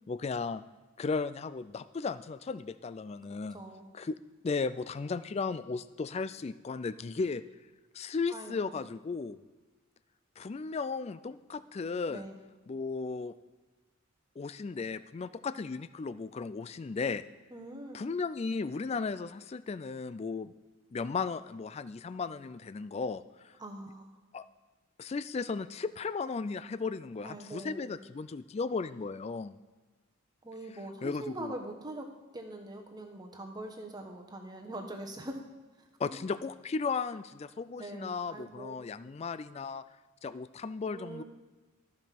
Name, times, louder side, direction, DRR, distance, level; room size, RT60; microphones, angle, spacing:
voice 1, 0.1-0.6 1.0-3.6 3.9-4.2 4.4-7.4 7.9-9.4 10.4-12.3 12.7-13.3 14.4-17.2 17.9-20.5 20.9-23.5 24.3-24.4 25.0-29.6 31.0-31.5 36.0-39.8 40.2-41.2, left 4 dB, 30° left, 15 dB, 0.3 m, -35 dB
voice 2, 3.5-3.9 8.3-8.8 12.1-12.4 17.5-18.0 23.6-24.1 27.2-28.0 30.4-35.4 35.8-36.1 37.8-38.8 40.9-41.2, right 1 dB, 20° right, 3 dB, 1.1 m, -43 dB
13.5 x 5.4 x 5.9 m, 1.3 s
head